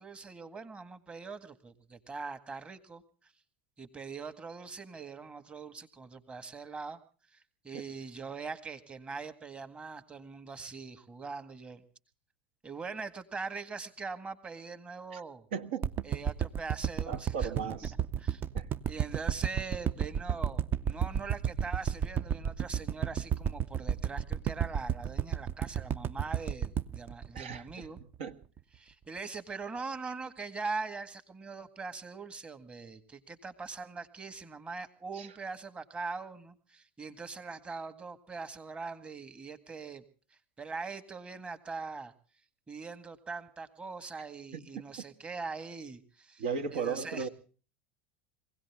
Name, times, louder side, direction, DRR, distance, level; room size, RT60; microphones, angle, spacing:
voice 1, 0.0-3.0 3.8-7.0 7.3-11.8 12.6-15.4 16.0-17.5 18.2-18.4 18.9-28.0 28.7-40.0 40.6-42.1 42.7-46.4 46.7-47.3, right 4 dB, 20° right, 9 dB, 1.9 m, -42 dB
voice 2, 15.5-16.1 17.1-17.9 18.5-18.7 27.3-27.9 28.2-28.4 35.1-35.3 44.5-44.8 46.4-47.3, right 6 dB, 70° right, 9 dB, 1.7 m, -36 dB
sound 1, 15.8-28.2 28.6-28.7, right 9 dB, 35° right, 0.7 m, -32 dB
23.0 x 17.0 x 3.7 m, 0.40 s
hypercardioid pair, 90°, 6 cm